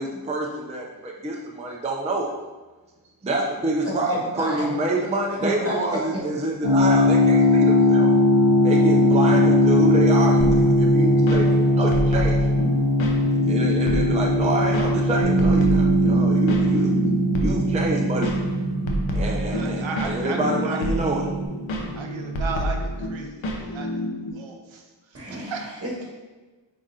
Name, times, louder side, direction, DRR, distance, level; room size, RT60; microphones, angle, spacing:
voice 1, 0.0-2.3 3.2-8.1 8.6-12.4 13.5-16.9 17.4-18.3 19.1-21.3, right 2 dB, 15° right, -1 dB, 0.4 m, -27 dB
voice 2, 3.8-4.7 5.4-6.2 25.1-26.2, right 1 dB, 30° right, -5 dB, 1.4 m, -31 dB
sound 1, 6.6-21.4, left 2 dB, 50° left, 0.8 m, -20 dB
sound 2, 10.4-24.3, equal, 85° left, 0.8 m, -29 dB
Bass guitar, 15.2-21.5, right 4 dB, 65° right, 1.0 m, -25 dB
voice 3, 19.5-21.0 22.0-23.3 23.7-23.9 24.3-24.8 25.3-25.6, right 4 dB, 90° right, 2 dB, 0.7 m, -34 dB
5.0 x 3.7 x 2.7 m, 1.2 s
wide cardioid pair, 110°, 45 cm